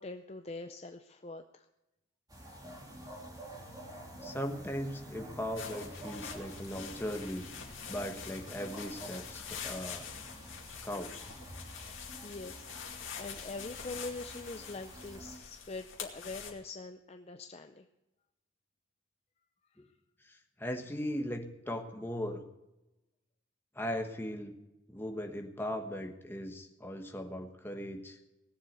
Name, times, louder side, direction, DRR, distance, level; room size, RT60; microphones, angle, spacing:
voice 1, 0.0-1.7 12.2-17.9, left 3 dB, 30° left, 7 dB, 0.5 m, -44 dB
sound 1, 2.3-15.4, right 1 dB, 20° right, 2.9 m, -49 dB
voice 2, 4.2-7.5 7.9-10.1 10.8-11.1 20.2-22.4 23.7-24.5 24.9-28.2, equal, 10° left, 4 dB, 1.3 m, -38 dB
sound 2, 5.6-16.5, left 7 dB, 65° left, 2.4 m, -45 dB
18.5 x 7.5 x 8.0 m, 0.97 s
head